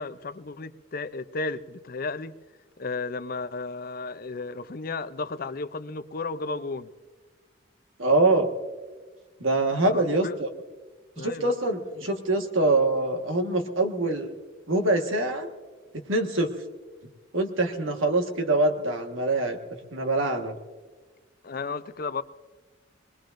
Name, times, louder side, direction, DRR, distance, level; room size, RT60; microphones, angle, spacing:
voice 1, 0.0-2.3 2.8-6.9 9.8-10.3 11.2-11.5 21.4-22.2, left 3 dB, 45° left, 12 dB, 0.5 m, -33 dB
voice 2, 8.0-8.5 9.4-10.5 11.2-14.3 14.7-15.5 16.1-16.5 17.3-19.6 19.9-20.5, right 2 dB, 80° right, 4 dB, 1.5 m, -24 dB
23.0 x 20.0 x 2.6 m, 1.3 s
head